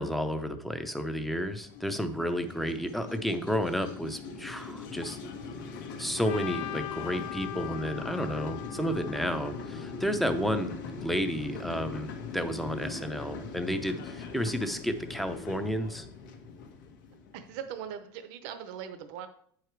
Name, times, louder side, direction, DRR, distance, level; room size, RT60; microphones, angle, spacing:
voice 1, 0.0-5.2 6.0-16.1, equal, ahead, 8 dB, 0.6 m, -32 dB
sound 1, 1.1-17.8, left 4 dB, 80° left, 1.2 m, -41 dB
Trumpet, 6.2-10.4, left 14 dB, 50° left, 0.4 m, -41 dB
voice 2, 17.3-19.3, right 8 dB, 60° right, 9 dB, 0.7 m, -40 dB
8.8 x 4.9 x 4.6 m, 0.64 s
supercardioid pair, 150°, 11 cm